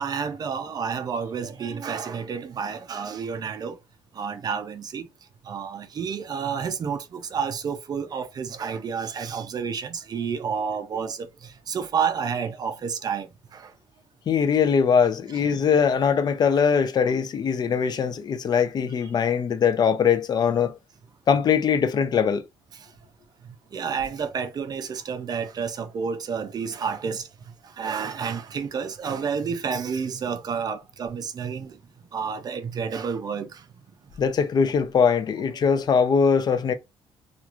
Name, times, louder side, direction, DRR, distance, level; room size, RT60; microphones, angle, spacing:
voice 1, 0.0-3.8 4.2-5.1 5.5-13.7 19.0-19.1 23.7-27.3 27.8-31.8 32.1-33.6 35.7-35.8, right 6 dB, 40° right, 0.5 m, -30 dB
voice 2, 14.3-20.8 21.3-22.4 34.2-36.7, left 6 dB, 45° left, 0.5 m, -21 dB
2.9 x 2.4 x 2.4 m
cardioid pair, 115°, 10 cm